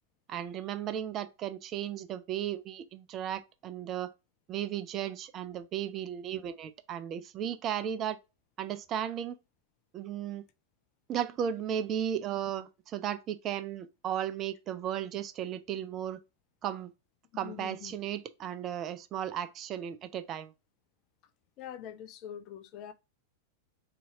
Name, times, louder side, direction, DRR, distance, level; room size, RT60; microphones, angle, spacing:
voice 1, 0.3-4.1 4.5-8.2 8.6-9.4 9.9-10.4 11.1-16.2 16.6-16.9 17.4-20.5, right 10 dB, 30° right, 0.4 m, -35 dB
voice 2, 17.4-18.0 21.6-22.9, left 10 dB, 40° left, 0.5 m, -44 dB
2.9 x 2.7 x 3.5 m
figure-of-eight pair, 90°, 0 cm